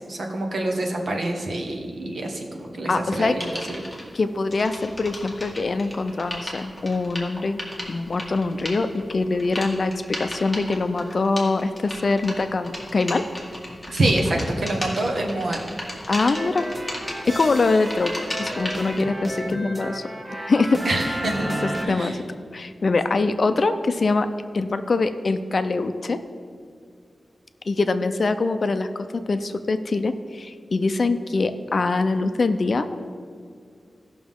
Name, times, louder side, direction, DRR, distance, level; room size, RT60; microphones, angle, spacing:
voice 1, 0.1-3.8 13.9-15.6 20.8-21.5 21.8-22.1, right 1 dB, 65° right, 2 dB, 1.4 m, -26 dB
voice 2, 2.9-3.4 4.1-7.6 7.9-13.2 16.1-16.6 17.3-20.0 20.5-21.2 21.6-22.2 22.5-24.3 24.5-26.2 27.7-32.9, left 3 dB, 50° left, 9 dB, 0.5 m, -23 dB
sound 1, 3.4-4.0 4.5-19.0, left 1 dB, 5° left, 1.9 m, -35 dB
sound 2, 16.3-21.9, right 1 dB, 15° right, 0.8 m, -32 dB
17.0 x 6.0 x 3.7 m, 2.2 s
wide cardioid pair, 140°, 0 cm